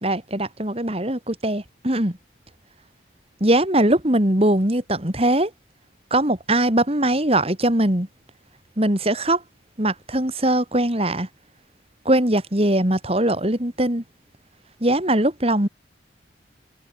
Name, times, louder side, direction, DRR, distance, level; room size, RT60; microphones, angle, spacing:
voice 1, 0.0-2.2 3.4-5.5 6.1-8.1 8.8-9.4 9.8-11.3 12.0-14.0 14.8-15.7, right 1 dB, 30° right, 3.1 m, -21 dB
head